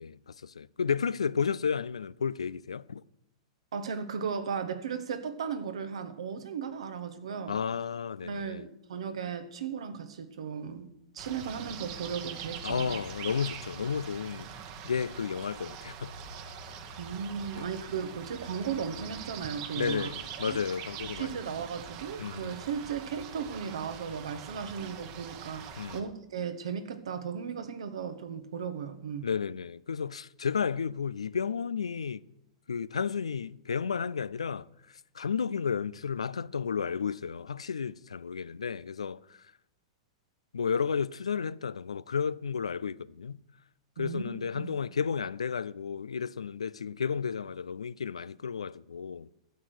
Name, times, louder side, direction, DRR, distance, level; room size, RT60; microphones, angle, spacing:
voice 1, 0.0-3.0 7.5-8.7 12.6-14.5 14.8-16.1 17.5-17.6 19.8-21.4 22.2-22.6 25.8-26.0 29.2-32.2 32.7-34.7 35.2-39.2 40.5-43.4 44.0-49.3, left 6 dB, 85° left, 0.4 m, -32 dB
voice 2, 3.7-7.6 8.1-10.9 11.1-12.9 16.7-20.1 20.5-20.6 21.1-29.3 44.0-44.7, right 6 dB, 75° right, 1.3 m, -36 dB
sound 1, 11.2-26.0, right 7 dB, 50° right, 1.4 m, -43 dB
12.5 x 7.6 x 6.4 m
hypercardioid pair, 110°, 3 cm